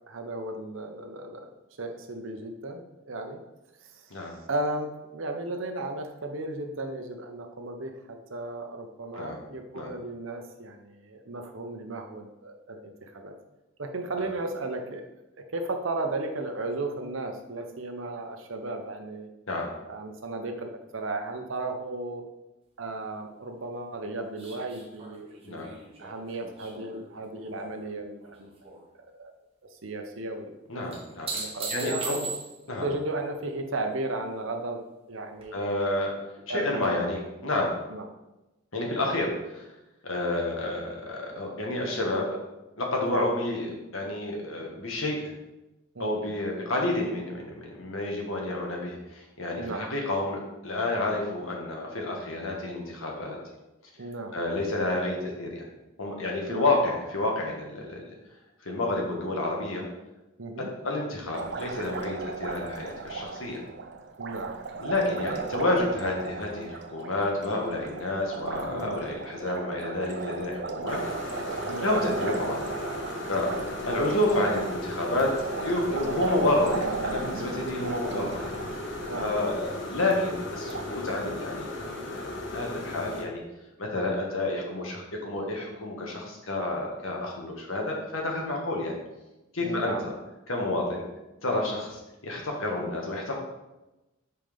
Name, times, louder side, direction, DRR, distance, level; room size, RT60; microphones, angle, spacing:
voice 1, 0.1-1.5 1.8-3.4 3.8-4.1 4.4-13.3 13.8-15.0 15.5-19.3 19.8-22.2 22.8-29.3 29.7-31.0 31.3-32.3 32.8-34.8 35.1-35.7 36.5-37.1 37.9-38.1 43.0-43.3 45.9-46.2 49.6-49.8 54.0-54.3 56.5-56.7 60.4-60.7 64.2-64.6 68.7-69.0 70.8-70.9 71.7-72.0 73.5-73.6 78.0-78.3 79.0-79.4 89.6-90.0, right 2 dB, 75° right, 4 dB, 0.9 m, -35 dB
sound 1, 24.4-27.8 28.2-28.8 30.9-32.8 35.4-35.5, right 4 dB, 30° right, 1.2 m, -38 dB
voice 2, 30.7-31.3 31.7-32.2 32.7-32.9 35.5-36.1 36.5-37.7 38.7-39.7 40.0-42.4 42.8-45.3 46.0-53.4 54.3-55.6 56.0-58.0 58.6-59.9 60.6-63.6 64.8-71.0 71.5-72.7 73.3-73.5 73.8-78.6 79.2-83.4 83.8-89.0 89.5-90.1 90.5-91.0 91.4-93.4, left 2 dB, 80° left, 0 dB, 1.6 m, -29 dB
Liquid, 61.3-80.9, right 4 dB, 55° right, 0.5 m, -37 dB
sound 2, 70.9-83.2, left 2 dB, 60° left, 1.2 m, -36 dB
5.5 x 4.5 x 5.2 m, 1.0 s
head